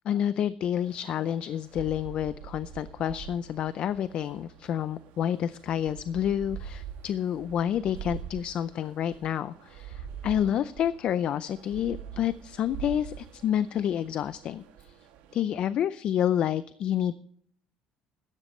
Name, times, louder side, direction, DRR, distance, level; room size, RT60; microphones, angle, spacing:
voice 1, 0.1-14.9 15.3-17.1, left 10 dB, 45° left, 15 dB, 0.4 m, -29 dB
sound 1, 0.8-15.4, right 9 dB, 80° right, 2.3 m, -44 dB
16.5 x 13.0 x 3.1 m, 0.62 s
cardioid pair, 155°, 3 cm